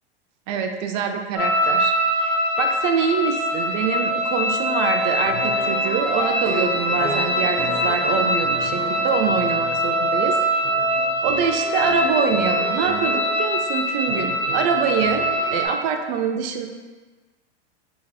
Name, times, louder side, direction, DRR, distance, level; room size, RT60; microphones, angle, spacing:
voice 1, 0.5-10.4 11.2-16.7, right 6 dB, 45° right, 4 dB, 0.4 m, -25 dB
sound 1, 1.4-15.7, equal, 20° left, 1.0 m, -23 dB
sound 2, 5.2-10.3 10.6-13.3 14.1-15.6, right 3 dB, 85° right, 0.8 m, -33 dB
3.2 x 2.3 x 4.1 m, 1.3 s
hypercardioid pair, 115°, 33 cm